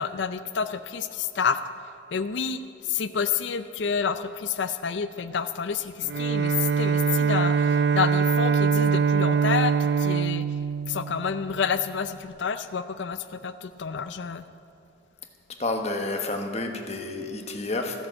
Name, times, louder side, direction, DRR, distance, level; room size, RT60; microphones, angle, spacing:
voice 1, 0.0-1.6 2.1-10.5 10.9-14.4, left 6 dB, 65° left, 10 dB, 0.5 m, -29 dB
Bowed string instrument, 6.0-11.7, right 6 dB, 55° right, 0.4 m, -23 dB
voice 2, 15.6-18.1, left 2 dB, 35° left, 3 dB, 1.3 m, -30 dB
13.5 x 10.5 x 7.7 m, 2.8 s
head